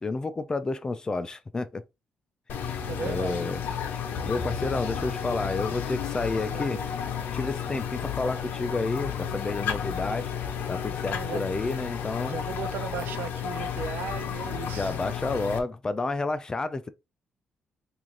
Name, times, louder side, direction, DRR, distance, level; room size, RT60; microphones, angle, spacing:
voice 1, 0.0-1.8 3.0-3.6 4.2-6.8 7.3-10.3 10.7-12.4 14.7-16.9, left 3 dB, 20° left, 0.3 m, -30 dB
sound 1, 2.5-15.6, left 8 dB, 80° left, 0.7 m, -32 dB
voice 2, 2.9-3.7 6.5-6.9 11.1-11.5 12.3-15.0, right 8 dB, 85° right, 0.5 m, -37 dB
3.1 x 2.5 x 3.7 m
cardioid pair, 130°, 3 cm